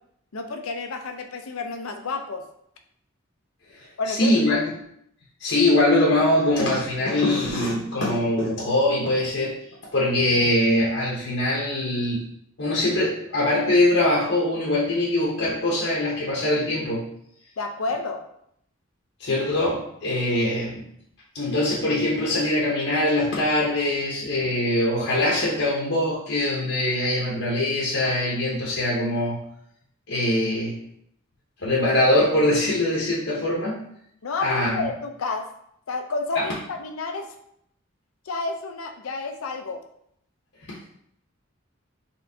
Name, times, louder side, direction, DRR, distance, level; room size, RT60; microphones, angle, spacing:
voice 1, 0.3-2.4 4.0-4.6 17.6-18.2 34.2-35.5 35.9-37.3 38.2-39.8, left 3 dB, 85° left, 5 dB, 0.6 m, -30 dB
voice 2, 4.1-4.7 5.4-9.6 9.9-12.3 12.6-17.1 19.2-20.8 21.3-29.4 30.1-30.8 31.6-33.9 34.4-34.9 36.4-36.5, left 1 dB, 60° left, -6 dB, 0.9 m, -22 dB
4.2 x 3.7 x 2.7 m, 0.72 s
head